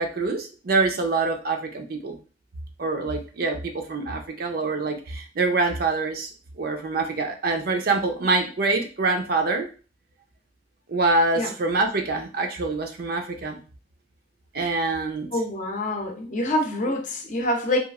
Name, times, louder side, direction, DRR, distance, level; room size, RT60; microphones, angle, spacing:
voice 1, 0.0-2.2 2.8-6.3 6.6-9.7 10.9-13.6 14.5-15.3, right 3 dB, 55° right, 4 dB, 0.5 m, -25 dB
voice 2, 15.3-17.8, left 1 dB, 45° left, 2 dB, 0.6 m, -26 dB
2.9 x 2.4 x 2.4 m, 0.36 s
head